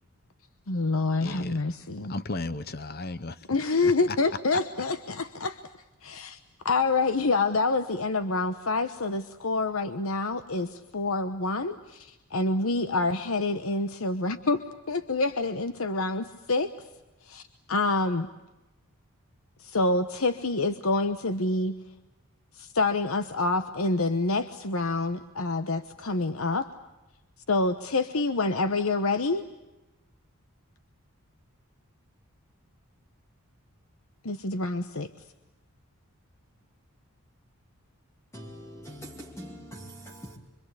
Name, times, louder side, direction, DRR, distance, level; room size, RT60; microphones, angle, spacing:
voice 1, 0.7-2.1 3.5-5.6 6.0-6.4 6.6-16.7 17.3-17.4 17.7-18.3 19.6-21.8 22.6-26.7 27.5-29.4 34.2-35.1, left 3 dB, 70° left, 1.1 m, -27 dB
voice 2, 1.2-1.6 2.1-3.4 3.8-4.2 4.5-4.6, left 3 dB, 45° left, 0.9 m, -35 dB
voice 3, 38.3-40.4, equal, 10° left, 2.8 m, -43 dB
26.0 x 25.5 x 8.3 m
head